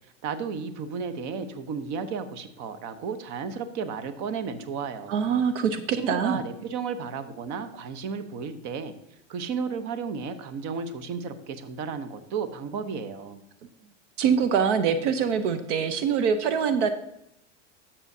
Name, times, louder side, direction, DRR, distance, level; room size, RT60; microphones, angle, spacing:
voice 1, 0.2-5.2 5.9-8.9 9.3-13.4, right 5 dB, 50° right, 11 dB, 1.1 m, -33 dB
voice 2, 5.1-6.4 14.2-16.9, right 7 dB, 75° right, 10 dB, 0.9 m, -24 dB
12.5 x 7.2 x 2.8 m, 0.81 s
supercardioid pair, 115°, 37 cm